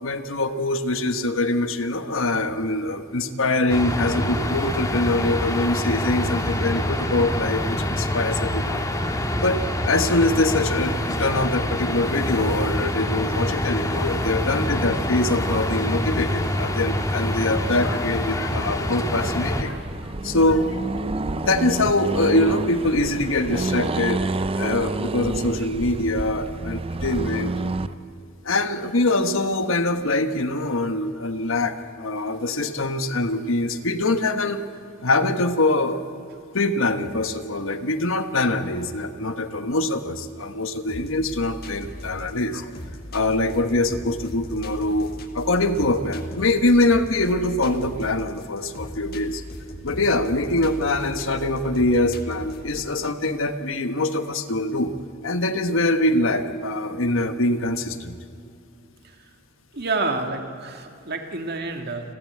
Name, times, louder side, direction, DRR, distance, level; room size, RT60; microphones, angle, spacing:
voice 1, 0.0-8.8 9.4-19.8 20.2-20.8 21.4-24.2 24.6-27.5 28.4-34.6 35.0-36.0 36.5-42.7 43.1-45.1 45.3-49.4 49.8-54.9 55.2-58.2, left 2 dB, 75° left, 8 dB, 1.4 m, -23 dB
sound 1, 3.7-19.6, left 1 dB, 15° left, 1.9 m, -26 dB
Accelerating revving vroom, 19.2-27.9, right 2 dB, 30° right, 0.6 m, -29 dB
sound 2, 40.9-52.9, left 1 dB, 50° left, 1.8 m, -38 dB
voice 2, 59.7-62.1, right 3 dB, 55° right, 4 dB, 2.0 m, -29 dB
30.0 x 13.0 x 8.7 m, 2.6 s
head